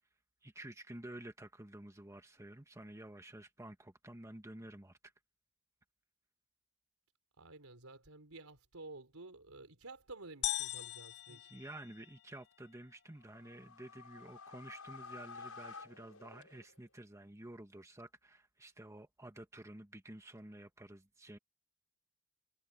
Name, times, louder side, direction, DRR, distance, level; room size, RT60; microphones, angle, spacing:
voice 1, 0.4-5.1 11.3-21.4, right 1 dB, 15° right, 1.5 m, -51 dB
voice 2, 7.4-11.6, right 2 dB, 80° right, 4.2 m, -52 dB
sound 1, 10.4-12.4, left 14 dB, 55° left, 0.4 m, -40 dB
sound 2, 13.2-17.0, left 4 dB, 80° left, 7.2 m, -52 dB
head